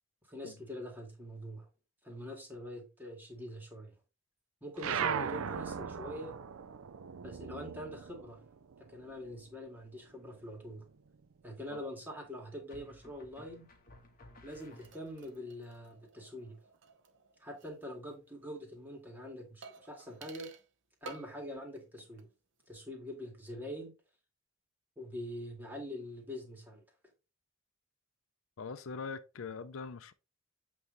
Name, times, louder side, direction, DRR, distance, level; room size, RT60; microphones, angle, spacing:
voice 1, 0.3-1.7 2.0-3.9 4.6-6.3 7.2-8.4 8.8-10.9 11.4-13.7 14.4-16.6 17.4-20.5 21.0-22.3 22.7-23.9 25.0-26.8, equal, 10° right, 2.1 m, -44 dB
sound 1, 4.8-9.6 10.0-11.4, right 7 dB, 80° right, 0.5 m, -39 dB
sound 2, 10.0-10.6 12.7-15.4, left 1 dB, 40° left, 1.4 m, -57 dB
sound 3, 14.5-17.8 18.1-18.2 19.6-20.7 21.1-21.5 21.8-22.3 22.6-22.7, right 3 dB, 60° right, 0.9 m, -54 dB
voice 2, 28.6-30.1, left 5 dB, 70° left, 0.5 m, -42 dB
8.2 x 3.1 x 3.9 m
head